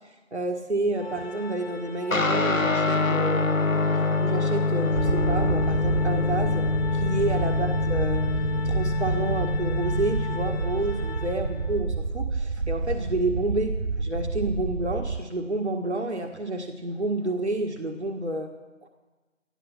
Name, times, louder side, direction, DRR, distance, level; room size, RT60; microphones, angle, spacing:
voice 1, 0.3-3.6 3.9-6.7 6.9-8.2 8.6-18.5 18.8-18.9, right 2 dB, 60° right, 4 dB, 1.8 m, -29 dB
Organ, 0.9-11.8, left 4 dB, 45° left, 3.0 m, -40 dB
Guitar, 2.1-11.8, left 3 dB, 85° left, 1.5 m, -26 dB
sound 1, 4.9-15.2, right 4 dB, 80° right, 0.9 m, -29 dB
19.5 x 12.0 x 6.0 m, 1.2 s
figure-of-eight pair, 175°, 39 cm